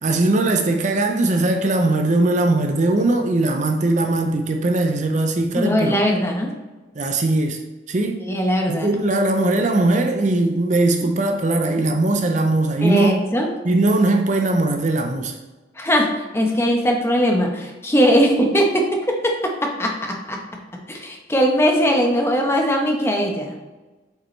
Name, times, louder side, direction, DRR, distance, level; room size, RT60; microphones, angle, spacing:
voice 1, 0.0-6.0 6.9-7.6 7.9-8.2 8.7-13.2 13.6-15.4, right 2 dB, 40° right, 4 dB, 0.6 m, -20 dB
voice 2, 5.5-6.5 8.2-8.9 11.0-11.1 12.8-13.5 15.8-16.1 16.3-20.4 20.9-23.5, equal, 15° left, 1 dB, 0.9 m, -20 dB
7.7 x 5.1 x 3.2 m, 1.2 s
head